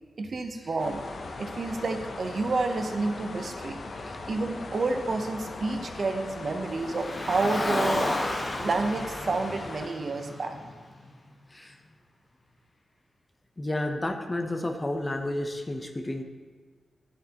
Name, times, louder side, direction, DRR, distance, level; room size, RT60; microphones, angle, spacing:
voice 1, 0.2-1.0 1.4-3.8 4.3-8.1 8.6-10.5, right 3 dB, 50° right, 5 dB, 0.7 m, -29 dB
sound 1, 0.8-9.9, left 3 dB, 55° left, 0.6 m, -40 dB
Car, 6.7-11.1, left 1 dB, 40° left, 1.1 m, -32 dB
voice 2, 13.6-16.2, left 1 dB, 20° left, 5 dB, 0.7 m, -31 dB
10.5 x 7.4 x 2.9 m, 1.6 s
wide cardioid pair, 115°, 0 cm